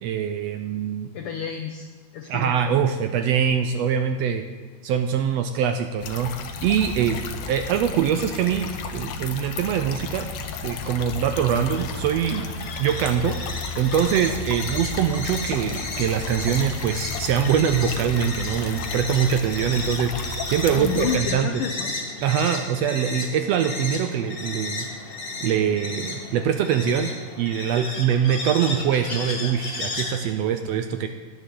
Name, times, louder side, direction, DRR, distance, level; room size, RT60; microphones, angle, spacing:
voice 1, 0.0-1.1 2.2-4.4 4.8-6.4 6.6-7.2 7.5-10.3 10.6-12.5 12.8-13.4 13.8-21.5 22.2-24.9 25.4-31.1, right 8 dB, 80° right, 7 dB, 1.6 m, -23 dB
voice 2, 1.1-2.5 20.7-22.0, left 7 dB, 85° left, 5 dB, 1.2 m, -30 dB
sound 1, 6.0-21.2, left 4 dB, 70° left, 1.9 m, -33 dB
sound 2, 10.5-30.2, left 3 dB, 40° left, 0.8 m, -34 dB
17.0 x 9.9 x 3.8 m, 1.5 s
omnidirectional pair, 3.3 m